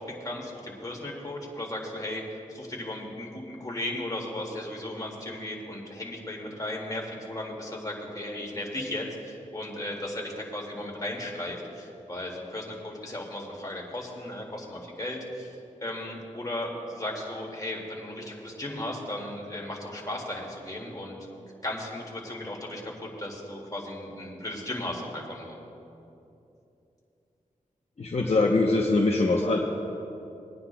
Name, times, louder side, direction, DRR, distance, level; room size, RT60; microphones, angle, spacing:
voice 1, 0.0-2.2 2.5-21.2 21.6-25.6, left 1 dB, 25° left, -2 dB, 2.2 m, -36 dB
voice 2, 28.0-29.6, left 2 dB, 50° left, -1 dB, 0.9 m, -23 dB
22.5 x 9.6 x 2.3 m, 2.8 s
wide cardioid pair, 65°, 14 cm